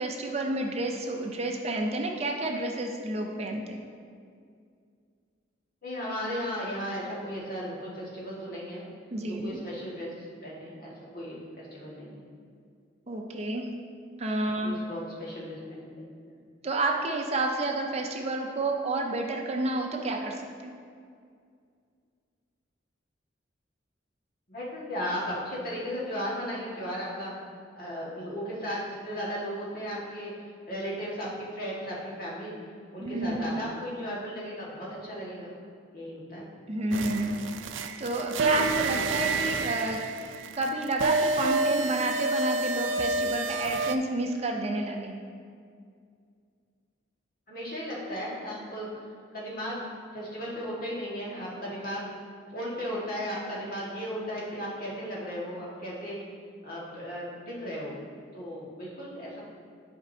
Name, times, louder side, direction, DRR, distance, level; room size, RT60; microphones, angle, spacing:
voice 1, 0.0-3.8 9.1-9.6 13.1-13.6 14.2-14.7 16.6-20.7 33.0-33.6 36.7-37.4 38.0-40.0 40.5-45.2, right 2 dB, 35° right, 1 dB, 0.5 m, -30 dB
voice 2, 5.8-8.8 9.3-12.2 14.6-16.4 24.5-27.3 27.7-30.3 30.7-32.5 32.9-35.5 35.9-36.5 47.5-48.9 49.3-49.8 50.1-52.0 52.5-56.2 56.6-58.0 58.3-59.4, equal, 50° left, -6 dB, 1.8 m, -36 dB
sound 1, 36.9-44.0, right 3 dB, 85° right, 0.4 m, -29 dB
11.0 x 5.2 x 2.8 m, 2.2 s
head